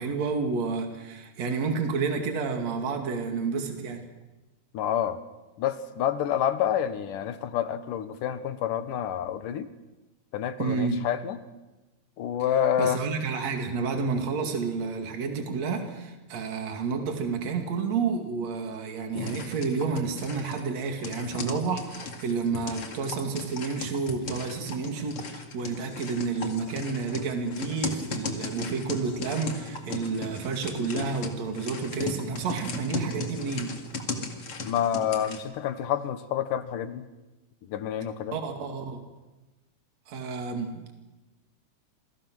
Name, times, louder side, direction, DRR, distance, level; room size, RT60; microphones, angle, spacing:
voice 1, 0.0-4.1 10.6-11.0 12.8-33.8 38.3-39.0 40.1-40.9, right 4 dB, 60° right, 4 dB, 3.5 m, -30 dB
voice 2, 4.7-5.2 5.6-9.7 10.3-11.4 12.2-13.0 34.7-37.1 37.7-38.4, left 9 dB, 85° left, 11 dB, 2.8 m, -28 dB
sound 1, 19.1-35.4, left 3 dB, 45° left, 2.9 m, -36 dB
27.5 x 24.5 x 6.2 m, 1.1 s
omnidirectional pair, 3.7 m